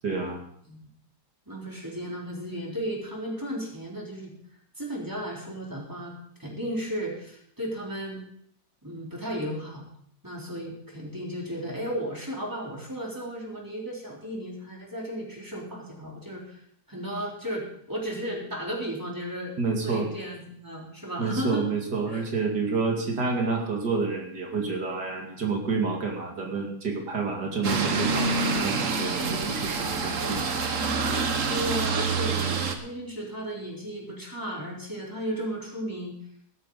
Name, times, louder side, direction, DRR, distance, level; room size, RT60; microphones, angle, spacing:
voice 1, 0.0-0.4 19.6-20.1 21.2-31.0, right 4 dB, 80° right, 1 dB, 3.0 m, -29 dB
voice 2, 1.5-4.3 4.8-6.1 6.4-8.2 8.8-9.9 10.2-16.6 16.9-19.5 19.8-21.7 22.1-22.2 31.5-36.1, equal, 10° right, -3 dB, 4.0 m, -34 dB
sound 1, 27.6-32.7, right 4 dB, 55° right, 1.5 m, -26 dB
16.0 x 12.5 x 4.1 m, 0.68 s
omnidirectional pair, 1.8 m